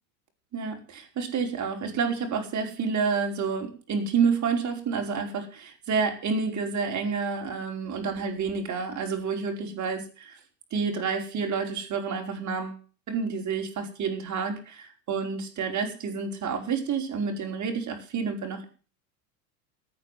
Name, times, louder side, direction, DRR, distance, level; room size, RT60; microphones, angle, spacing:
voice 1, 0.5-10.4 10.7-12.8 13.1-18.7, right 5 dB, 35° right, 3 dB, 5.2 m, -29 dB
14.0 x 9.3 x 7.7 m, 0.38 s
hypercardioid pair, 100°, 47 cm